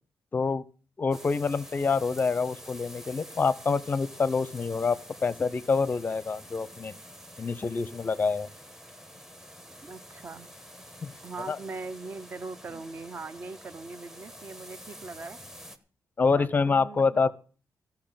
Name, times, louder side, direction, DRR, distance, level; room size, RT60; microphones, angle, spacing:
voice 1, 0.3-0.6 1.0-6.9 7.4-8.5 11.0-11.1 11.5-11.6 16.2-17.3, left 4 dB, 25° left, 19 dB, 0.6 m, -26 dB
sound 1, 1.1-15.8, equal, 5° right, 1.1 m, -48 dB
voice 2, 9.8-10.5 11.2-15.4 16.2-17.3, right 3 dB, 30° right, 14 dB, 0.7 m, -41 dB
15.0 x 5.8 x 8.8 m, 0.39 s
wide cardioid pair, 175°, 6 cm